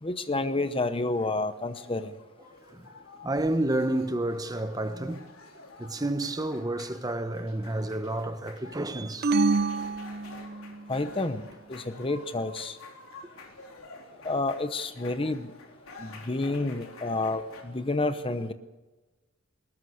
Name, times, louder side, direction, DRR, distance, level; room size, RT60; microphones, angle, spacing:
voice 1, 0.0-2.1 10.9-12.8 14.2-15.5 16.0-18.5, left 2 dB, 25° left, 0.9 m, -29 dB
sound 1, 0.6-17.6, left 3 dB, 80° left, 3.9 m, -49 dB
voice 2, 3.2-5.3 5.8-9.3, right 1 dB, 15° right, 1.1 m, -30 dB
sound 2, 9.2-10.9, right 3 dB, 50° right, 0.6 m, -27 dB
21.0 x 19.5 x 6.5 m
head